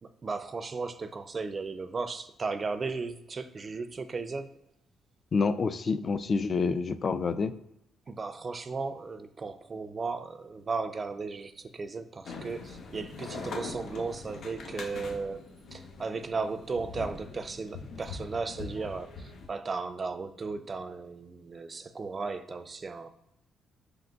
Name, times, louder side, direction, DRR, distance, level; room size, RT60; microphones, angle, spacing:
voice 1, 0.0-4.5 8.1-15.4 15.7-23.1, right 4 dB, 35° right, 11 dB, 0.4 m, -35 dB
voice 2, 5.3-7.5, left 4 dB, 40° left, 12 dB, 0.3 m, -28 dB
sound 1, 12.2-19.5, left 3 dB, 65° left, 0.9 m, -42 dB
4.8 x 3.7 x 2.3 m, 0.80 s
cardioid pair, 90°, 0 cm